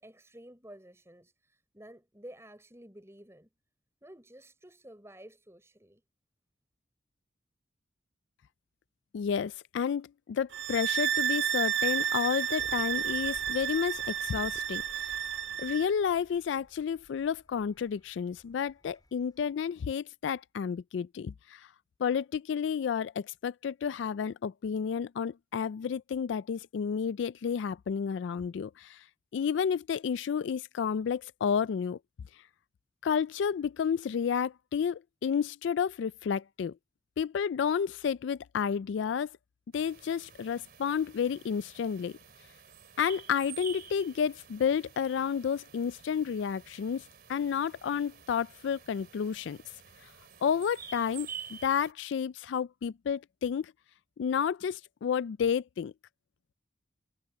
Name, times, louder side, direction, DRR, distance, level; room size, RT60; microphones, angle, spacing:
voice 1, 0.0-3.5 4.0-6.0, right 1 dB, 15° right, 6.2 m, -52 dB
voice 2, 9.1-15.1 15.6-21.7 22.0-29.0 29.3-32.0 33.0-36.7 37.2-39.3 39.7-42.2 43.0-47.0 47.3-49.6 50.4-53.7 54.2-55.9, left 7 dB, 75° left, 0.3 m, -31 dB
sound 1, 10.5-15.9, right 9 dB, 70° right, 0.4 m, -31 dB
sound 2, 12.6-19.5, equal, 20° left, 3.5 m, -56 dB
sound 3, 39.7-51.9, right 7 dB, 50° right, 3.5 m, -49 dB
head